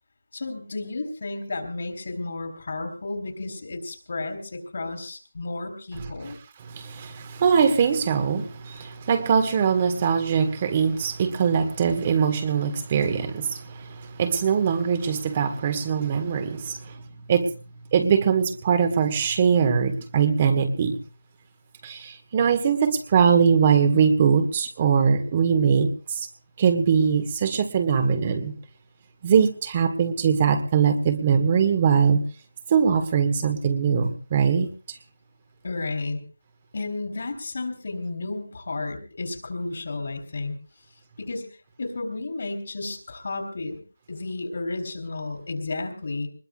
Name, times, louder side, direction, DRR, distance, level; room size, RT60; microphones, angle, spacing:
voice 1, 0.3-6.4 35.6-36.2 36.7-40.6 41.2-43.8 44.1-46.3, left 3 dB, 55° left, 7 dB, 3.9 m, -32 dB
voice 2, 6.7-17.0 17.3-17.5 17.9-21.0 21.8-26.3 26.6-28.5 29.2-32.2 32.7-34.7, right 6 dB, 30° right, 8 dB, 1.6 m, -22 dB
23.5 x 21.0 x 2.4 m, 0.36 s
figure-of-eight pair, 165°, 0 cm